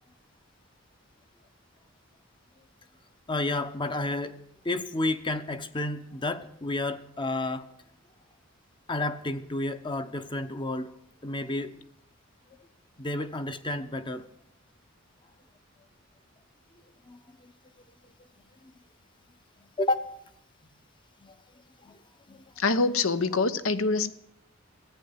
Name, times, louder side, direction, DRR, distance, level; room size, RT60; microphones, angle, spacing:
voice 1, 3.3-7.8 8.9-10.9 11.2-11.8 13.0-14.3 17.1-17.5 18.6-18.7 19.6-20.2 21.2-21.4 21.8-22.0 22.3-22.4, left 2 dB, 25° left, 0.8 m, -31 dB
voice 2, 22.6-24.1, left 3 dB, 75° left, 0.9 m, -25 dB
14.0 x 9.1 x 9.6 m
head